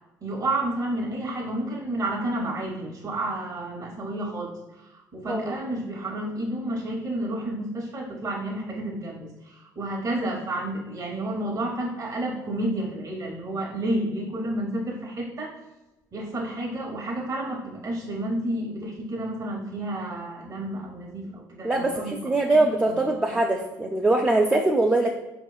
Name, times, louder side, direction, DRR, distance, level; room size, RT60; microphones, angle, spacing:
voice 1, 0.2-4.6 5.1-9.3 9.8-15.5 16.1-23.0 23.3-23.4, right 1 dB, 40° right, -2 dB, 0.9 m, -30 dB
voice 2, 21.6-25.1, right 2 dB, 15° right, 2 dB, 0.4 m, -22 dB
4.5 x 3.0 x 2.2 m, 0.99 s
supercardioid pair, 70°, 8 cm